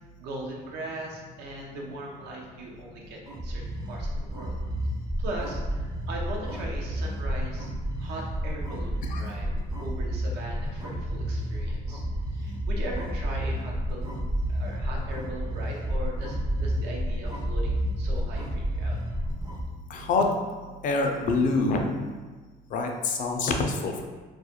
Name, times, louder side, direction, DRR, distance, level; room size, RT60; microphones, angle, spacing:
voice 1, 0.2-4.6 5.2-7.7 8.0-12.0 12.3-14.2 14.5-19.0, right 1 dB, 80° right, -1 dB, 0.6 m, -39 dB
sound 1, 3.3-19.7, equal, 20° right, 0.4 m, -30 dB
voice 2, 19.9-20.3 20.8-22.0 22.7-24.0, left 3 dB, 50° left, 3 dB, 0.4 m, -26 dB
2.3 x 2.1 x 2.8 m, 1.3 s
cardioid pair, 110°, 17 cm